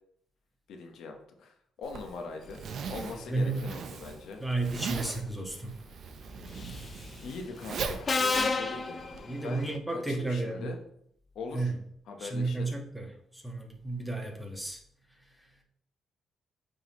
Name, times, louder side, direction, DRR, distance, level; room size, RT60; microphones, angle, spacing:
voice 1, 0.7-2.6 2.9-4.4 7.2-9.0 9.4-10.8 11.3-11.7 12.1-12.7, left 4 dB, 75° left, 3 dB, 1.0 m, -41 dB
Zipper (clothing), 1.8-9.2, right 5 dB, 60° right, 0.7 m, -39 dB
voice 2, 3.3-3.7 4.4-5.7 9.3-10.7 11.5-11.8 12.2-13.1 13.3-14.8, right 2 dB, ahead, 0 dB, 1.5 m, -32 dB
Subway metro underground, 6.6-6.9 8.1-9.8, left 3 dB, 40° left, 0.6 m, -30 dB
9.0 x 3.8 x 3.1 m, 0.69 s
cardioid pair, 90°, 0 cm